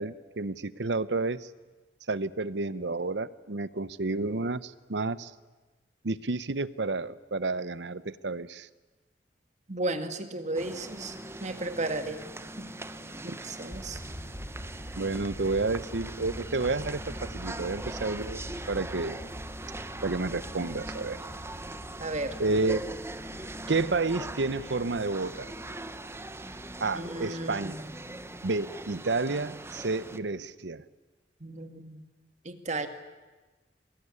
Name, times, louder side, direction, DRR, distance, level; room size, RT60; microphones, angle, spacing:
voice 1, 0.0-1.4 2.1-5.3 6.0-8.7 15.0-17.0 17.3-19.2 20.0-21.2 22.4-22.8 23.7-25.5 26.8-27.8 28.4-30.8, right 3 dB, 80° right, 16 dB, 0.9 m, -30 dB
voice 2, 9.7-12.2 12.6-12.7 13.2-14.0 22.0-22.3 26.9-27.9 31.4-32.0 32.4-32.9, right 2 dB, 45° right, 8 dB, 2.0 m, -34 dB
sound 1, 10.5-30.2, right 1 dB, 15° right, 1.0 m, -41 dB
sound 2, 13.7-28.3, equal, 35° left, 4.1 m, -44 dB
24.5 x 21.0 x 9.9 m, 1.2 s
head